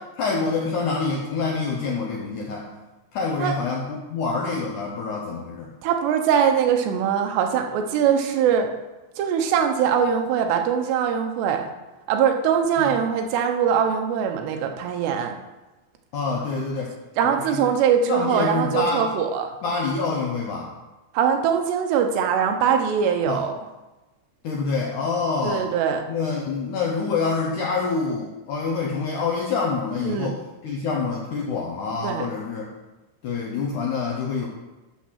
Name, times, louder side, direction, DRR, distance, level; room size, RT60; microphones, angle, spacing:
voice 1, 0.2-2.7 3.1-5.7 12.8-12.9 16.1-16.9 17.2-17.7 18.1-19.1 19.6-20.7 23.3-23.4 24.4-25.7 26.1-30.4 30.6-32.7 33.2-34.5, left 4 dB, 75° left, -2 dB, 1.9 m, -26 dB
voice 2, 5.8-8.7 9.2-11.7 12.1-15.3 17.2-19.5 21.1-23.5 25.4-26.0 30.0-30.3 32.0-32.3, right 8 dB, 85° right, 5 dB, 3.0 m, -22 dB
12.0 x 4.1 x 6.3 m, 1.1 s
omnidirectional pair, 4.8 m